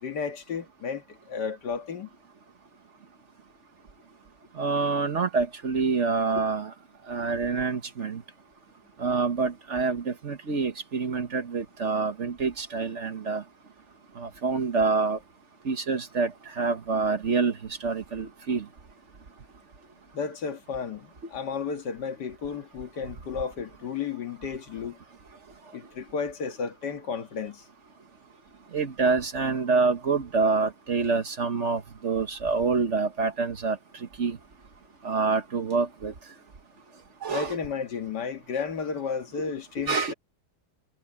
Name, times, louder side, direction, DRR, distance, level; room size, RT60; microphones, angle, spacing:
voice 1, 0.0-2.1 20.1-25.0 25.7-27.6 37.3-40.1, left 6 dB, 80° left, 2.2 m, -33 dB
voice 2, 4.6-6.7 7.1-8.2 9.0-13.4 14.2-15.2 15.6-17.6 17.8-18.6 28.7-33.8 34.2-34.4 35.0-36.1 37.2-37.6 39.9-40.1, right 4 dB, 45° right, 1.5 m, -26 dB
omnidirectional pair, 1.8 m